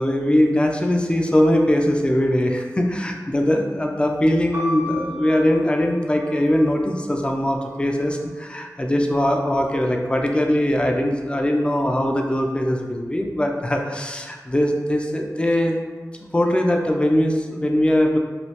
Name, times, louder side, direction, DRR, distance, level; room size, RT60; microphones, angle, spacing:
voice 1, 0.0-15.8 16.3-18.2, left 1 dB, 15° left, 2 dB, 0.3 m, -21 dB
sound 1, 4.5-8.4 9.2-9.9, left 1 dB, 35° right, 0.6 m, -36 dB
3.1 x 2.3 x 2.8 m, 1.4 s
wide cardioid pair, 60°, 7 cm